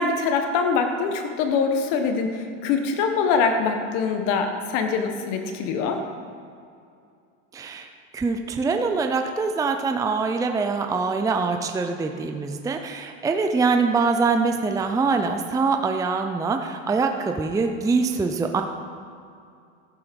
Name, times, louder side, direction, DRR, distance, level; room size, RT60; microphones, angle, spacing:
voice 1, 0.0-6.0, left 5 dB, 60° left, 5 dB, 1.4 m, -24 dB
voice 2, 7.5-18.6, right 4 dB, 10° right, 5 dB, 0.6 m, -24 dB
14.0 x 9.0 x 5.3 m, 2.4 s
supercardioid pair, 120°, 37 cm